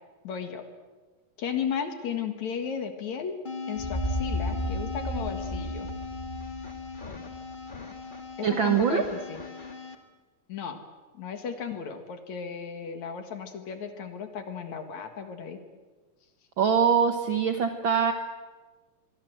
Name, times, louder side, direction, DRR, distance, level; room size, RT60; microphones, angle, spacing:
voice 1, 0.2-0.6 1.4-3.4 3.7-5.9 8.4-9.4 10.5-10.8 11.1-15.6, left 7 dB, 60° left, 7 dB, 2.9 m, -35 dB
sound 1, 3.4-9.9, left 4 dB, 30° left, 0.9 m, -38 dB
sound 2, 3.8-7.6, equal, 10° left, 3.3 m, -33 dB
voice 2, 8.4-9.0 16.6-18.1, right 7 dB, 75° right, 6 dB, 1.1 m, -23 dB
25.0 x 22.5 x 7.9 m, 1.3 s
omnidirectional pair, 4.0 m